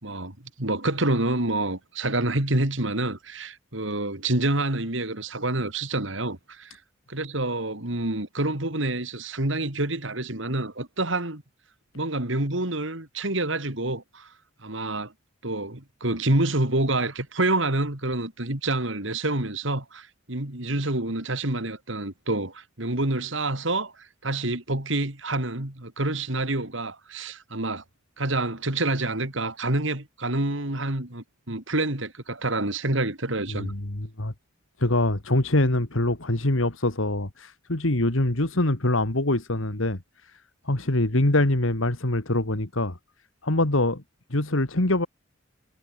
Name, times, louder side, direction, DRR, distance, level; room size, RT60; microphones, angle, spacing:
voice 1, 0.0-6.8 7.1-11.4 11.9-14.3 14.6-15.1 15.4-27.8 28.2-33.7, right 2 dB, 65° right, 3.2 m, -27 dB
voice 2, 33.5-34.3 34.8-40.3 40.7-43.0 43.4-44.0 44.3-45.1, left 1 dB, 75° left, 2.3 m, -24 dB
head